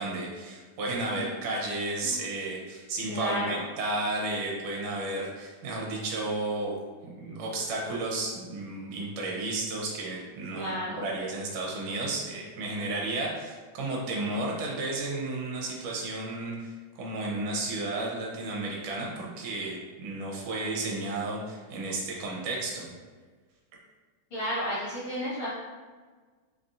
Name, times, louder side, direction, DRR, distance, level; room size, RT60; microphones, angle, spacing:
voice 1, 0.0-6.8 7.0-22.9, right 2 dB, 80° right, -2 dB, 2.3 m, -33 dB
voice 2, 3.1-3.6 10.5-11.0 24.3-25.5, equal, 70° left, -8 dB, 1.3 m, -32 dB
5.9 x 3.3 x 2.6 m, 1.4 s
omnidirectional pair, 3.6 m